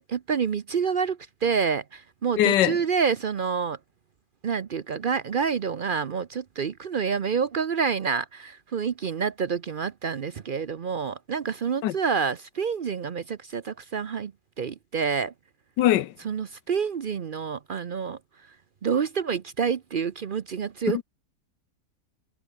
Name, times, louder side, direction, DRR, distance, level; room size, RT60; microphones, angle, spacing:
voice 1, 0.1-3.8 4.4-14.3 14.6-15.3 16.2-18.2 18.5-18.6 18.8-21.0, right 6 dB, 65° right, 0.5 m, -28 dB
voice 2, 2.4-2.8 11.8-11.9 15.8-16.1 20.9-21.0, left 13 dB, 80° left, 1.4 m, -21 dB
omnidirectional pair, 1.8 m